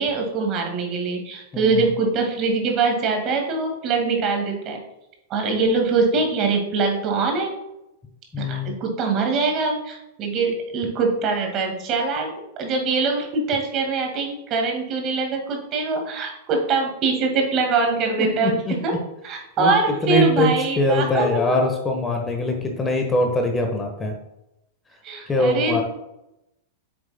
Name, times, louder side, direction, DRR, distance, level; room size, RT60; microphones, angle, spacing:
voice 1, 0.0-4.8 5.3-7.5 8.4-12.3 12.6-18.9 19.2-21.6 25.0-25.8, right 4 dB, 35° right, 2 dB, 1.9 m, -23 dB
voice 2, 1.5-1.8 8.3-8.7 18.2-19.0 19.6-19.7 20.0-24.1 25.3-25.8, left 2 dB, 15° left, 3 dB, 1.1 m, -22 dB
8.7 x 6.7 x 2.2 m, 0.88 s
figure-of-eight pair, 95°, 0 cm